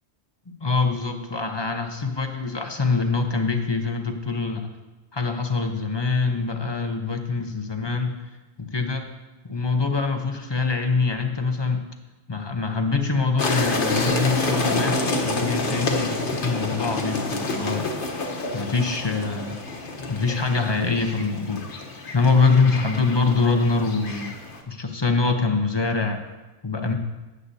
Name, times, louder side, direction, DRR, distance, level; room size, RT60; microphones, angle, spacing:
voice 1, 0.6-4.7 5.1-8.1 8.6-9.1 9.4-11.8 12.3-15.0 15.2-17.9 18.1-18.2 18.5-19.6 20.1-21.7 22.1-24.4 24.7-26.2 26.6-26.9, left 4 dB, 25° left, 5 dB, 0.7 m, -24 dB
sound 1, 13.4-24.6, left 2 dB, 50° left, 1.1 m, -28 dB
13.0 x 9.5 x 2.7 m, 1.1 s
omnidirectional pair, 1.3 m